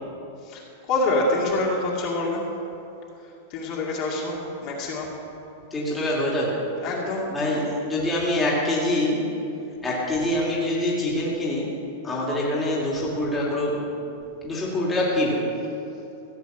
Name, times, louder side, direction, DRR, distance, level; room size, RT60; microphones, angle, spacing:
voice 1, 0.4-2.4 3.2-5.1 6.8-7.3, left 2 dB, 35° left, -3 dB, 2.4 m, -26 dB
voice 2, 5.7-6.6 7.3-9.4 9.8-11.7 12.0-13.8 14.4-15.4, left 1 dB, 10° left, -5 dB, 2.5 m, -25 dB
15.0 x 7.3 x 8.0 m, 2.8 s
supercardioid pair, 160°, 0 cm